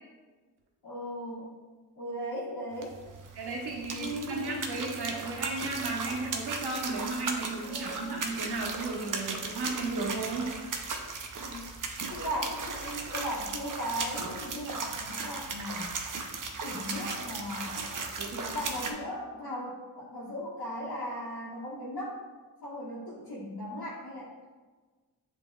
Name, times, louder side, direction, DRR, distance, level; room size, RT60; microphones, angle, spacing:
voice 1, 0.8-1.5 2.0-3.0 4.0-4.6 7.6-8.2 11.4-11.7 12.1-15.9 16.6-17.8 18.5-22.2 22.6-24.4, equal, 60° left, -9 dB, 1.4 m, -37 dB
sound 1, 2.7-18.9, right 4 dB, 50° right, 0.7 m, -37 dB
voice 2, 3.3-10.5 18.2-18.5, right 3 dB, 70° right, -1 dB, 1.1 m, -34 dB
6.8 x 3.3 x 2.3 m, 1.3 s
cardioid pair, 60°, 41 cm